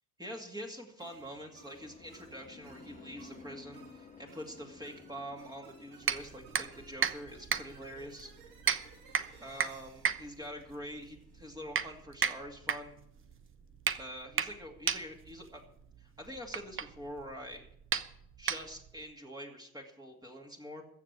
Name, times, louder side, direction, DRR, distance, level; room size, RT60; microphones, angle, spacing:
voice 1, 0.2-8.3 9.4-13.0 14.0-15.6 16.0-17.6 18.4-20.8, equal, 10° right, 0 dB, 2.4 m, -45 dB
sound 1, 1.0-11.4, right 5 dB, 85° right, 3.0 m, -59 dB
sound 2, 1.1-18.2, left 4 dB, 20° left, 1.9 m, -58 dB
sound 3, 6.0-19.0, right 7 dB, 30° right, 1.0 m, -36 dB
14.5 x 6.8 x 8.2 m, 0.73 s
hypercardioid pair, 80°, 43 cm